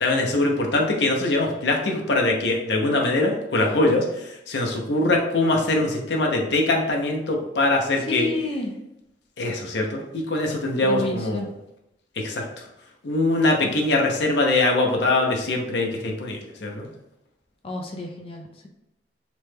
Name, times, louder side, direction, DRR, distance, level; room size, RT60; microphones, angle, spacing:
voice 1, 0.0-8.3 9.4-10.0 10.3-11.4 12.2-12.4 13.0-16.9, left 2 dB, 75° left, 1 dB, 0.6 m, -22 dB
voice 2, 8.0-8.7 10.8-11.5 13.6-13.7 17.6-18.7, left 2 dB, 30° left, 2 dB, 0.4 m, -30 dB
3.0 x 2.2 x 3.2 m, 0.87 s
head